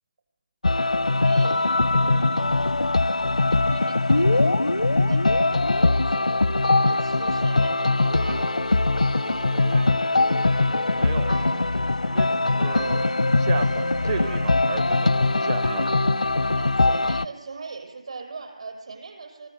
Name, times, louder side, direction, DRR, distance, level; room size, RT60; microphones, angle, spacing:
sound 1, 0.6-17.2, left 2 dB, 80° left, 0.7 m, -21 dB
voice 1, 1.2-1.6 1.9-2.6 3.5-6.3 6.8-10.1 16.5-19.5, right 4 dB, 55° right, 5 dB, 6.4 m, -40 dB
sound 2, 7.4-16.9, right 2 dB, 90° right, 5.2 m, -43 dB
voice 2, 10.9-11.3 12.0-15.8, right 6 dB, 35° right, 13 dB, 0.7 m, -34 dB
25.0 x 20.5 x 8.2 m, 1.2 s
figure-of-eight pair, 150°, 4 cm